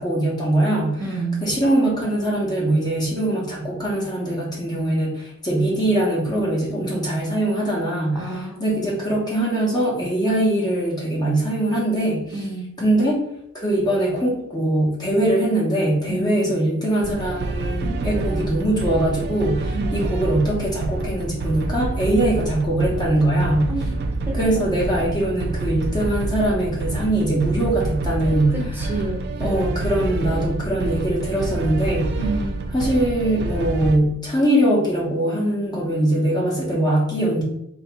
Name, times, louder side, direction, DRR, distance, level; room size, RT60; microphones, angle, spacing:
voice 1, 0.0-1.0 1.4-12.2 12.8-13.2 13.5-23.7 24.3-28.5 29.4-32.1 32.7-37.4, right 1 dB, 20° left, -4 dB, 1.1 m, -22 dB
voice 2, 1.0-1.4 8.1-8.6 12.3-12.8 16.0-16.5 19.7-20.1 23.7-24.7 28.5-29.3 32.1-32.7, right 3 dB, 10° right, -2 dB, 0.9 m, -30 dB
sound 1, 17.0-34.0, right 2 dB, 55° right, 0.4 m, -27 dB
3.0 x 2.9 x 4.6 m, 0.77 s
head